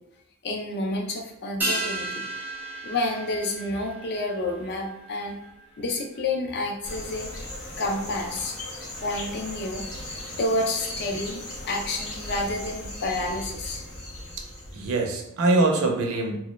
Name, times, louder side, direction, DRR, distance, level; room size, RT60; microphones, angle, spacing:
voice 1, 0.4-2.2 2.8-5.4 5.8-7.3 7.8-8.6 9.0-13.8, left 2 dB, 50° left, 1 dB, 0.5 m, -29 dB
sound 1, 1.6-6.3 6.6-6.7, right 1 dB, 10° right, 0.6 m, -34 dB
sound 2, 6.8-15.0, left 1 dB, 80° left, 0.8 m, -38 dB
voice 2, 13.9-16.4, right 2 dB, 70° right, 2 dB, 0.5 m, -25 dB
2.2 x 2.0 x 3.0 m, 0.82 s
head